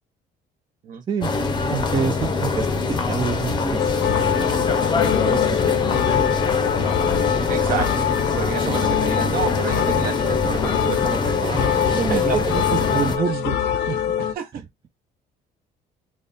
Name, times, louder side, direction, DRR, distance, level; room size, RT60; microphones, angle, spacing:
sound 1, 1.2-13.2, left 4 dB, 25° left, 0.6 m, -24 dB
voice 1, 1.7-7.5 11.8-14.3, right 6 dB, 25° right, 0.3 m, -29 dB
sound 2, 3.8-14.3, left 10 dB, 75° left, 0.5 m, -23 dB
voice 2, 7.5-8.1 8.4-12.6 12.9-13.0 13.9-14.6, right 7 dB, 60° right, 0.9 m, -30 dB
3.4 x 2.1 x 3.9 m
cardioid pair, 110°, 17 cm